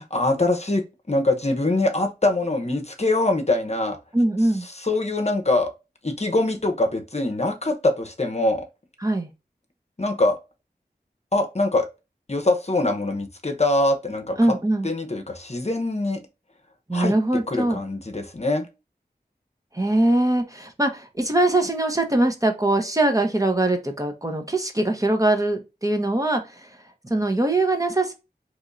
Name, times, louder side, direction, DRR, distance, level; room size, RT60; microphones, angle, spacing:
voice 1, 0.0-4.0 4.7-5.7 6.0-8.6 10.0-10.4 11.3-11.9 12.3-14.4 14.8-16.2 16.9-17.1 17.5-18.7, left 2 dB, 40° left, 0.8 m, -23 dB
voice 2, 4.1-4.6 9.0-9.3 14.4-14.9 16.9-17.8 19.7-26.7 27.0-28.1, right 2 dB, 20° right, 0.8 m, -22 dB
3.5 x 3.0 x 2.5 m
wide cardioid pair, 50°, 17 cm